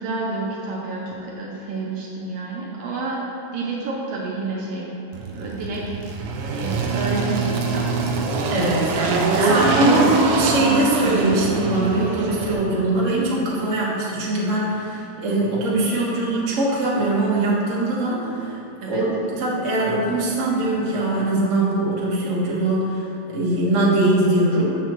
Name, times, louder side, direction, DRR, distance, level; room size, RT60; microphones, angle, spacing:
voice 1, 0.0-3.2 3.5-4.9 5.3-5.9 6.4-8.0 9.0-9.6 18.8-19.0, right 3 dB, 70° right, -4 dB, 1.7 m, -29 dB
Engine, 5.1-12.5, right 4 dB, 85° right, 1.3 m, -23 dB
voice 2, 8.5-8.9 9.5-18.6 18.9-24.8, right 2 dB, 45° right, -6 dB, 1.0 m, -21 dB
7.3 x 6.9 x 3.0 m, 2.9 s
omnidirectional pair, 3.3 m